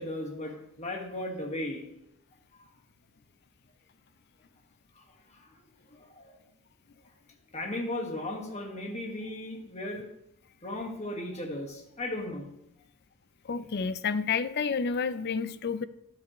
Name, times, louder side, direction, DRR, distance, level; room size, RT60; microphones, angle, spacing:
voice 1, 0.0-1.8 2.5-2.7 4.9-6.3 7.5-10.1 10.6-12.5, left 1 dB, 30° left, 1 dB, 1.7 m, -36 dB
voice 2, 13.4-15.8, left 5 dB, 50° left, 14 dB, 0.4 m, -30 dB
12.5 x 9.6 x 3.1 m, 0.79 s
head